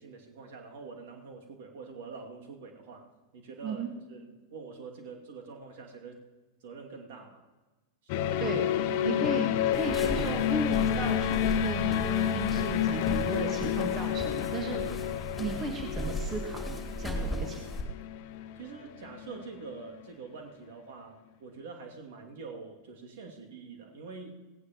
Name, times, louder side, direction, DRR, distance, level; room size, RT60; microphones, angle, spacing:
voice 1, 0.0-6.2 6.6-7.4 8.1-8.6 9.1-9.3 18.6-24.4, right 4 dB, 55° right, 1 dB, 2.5 m, -45 dB
sound 1, 8.1-19.5, left 10 dB, 45° left, 0.8 m, -30 dB
voice 2, 9.0-14.9 15.4-16.6 17.0-17.8, right 4 dB, 25° right, 2 dB, 1.7 m, -35 dB
sound 2, 9.7-17.8, equal, 10° left, 2.6 m, -38 dB
18.5 x 17.0 x 3.1 m, 1.2 s
figure-of-eight pair, 90°, 0 cm